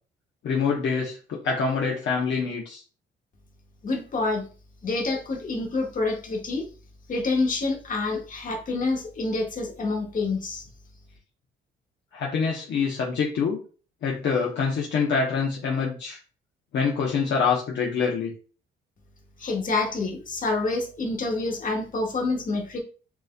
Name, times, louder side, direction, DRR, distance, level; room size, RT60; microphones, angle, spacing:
voice 1, 0.4-2.8 12.1-13.6 14.0-16.2 16.7-18.3, left 5 dB, 65° left, -2 dB, 0.8 m, -25 dB
voice 2, 3.8-4.5 4.8-6.7 7.1-10.6 19.4-22.8, left 3 dB, 40° left, 1 dB, 1.3 m, -27 dB
5.9 x 2.7 x 2.2 m, 0.37 s
cardioid pair, 90°, 20 cm